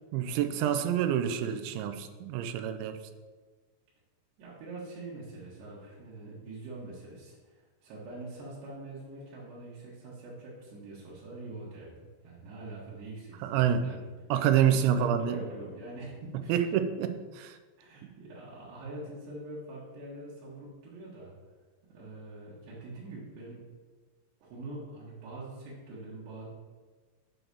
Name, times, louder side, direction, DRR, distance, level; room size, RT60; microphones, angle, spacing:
voice 1, 0.1-3.0 13.4-13.9 14.3-15.4 16.5-17.6, right 9 dB, 90° right, 9 dB, 3.0 m, -27 dB
voice 2, 4.4-11.9 12.2-14.1 14.7-16.6 17.8-21.3 21.9-23.6 24.4-26.5, right 2 dB, 70° right, -8 dB, 3.6 m, -44 dB
7.6 x 4.0 x 6.7 m, 1.4 s
omnidirectional pair, 5.2 m